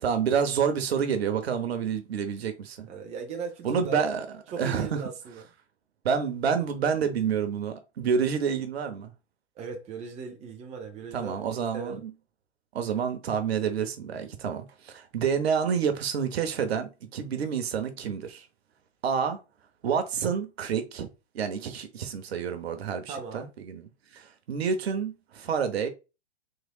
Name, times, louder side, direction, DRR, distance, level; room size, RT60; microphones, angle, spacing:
voice 1, 0.0-2.9 3.6-4.3 4.6-5.0 6.0-9.1 11.1-12.1 12.7-18.5 19.0-19.4 19.8-21.1 21.3-25.9, right 7 dB, 60° right, 0.8 m, -28 dB
voice 2, 2.8-4.1 4.5-5.4 9.6-11.4 11.7-12.0 23.1-23.5, right 5 dB, 20° right, 0.7 m, -38 dB
3.7 x 3.2 x 2.3 m
hypercardioid pair, 120°, 35 cm